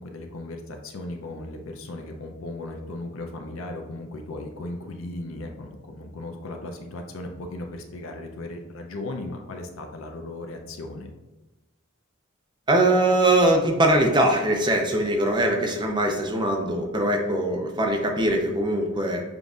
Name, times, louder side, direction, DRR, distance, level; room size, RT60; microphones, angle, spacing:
voice 1, 0.0-11.1, left 2 dB, 70° left, 3 dB, 0.6 m, -36 dB
voice 2, 12.7-19.2, right 1 dB, 20° right, 2 dB, 0.6 m, -22 dB
6.8 x 2.6 x 2.4 m, 1.1 s
head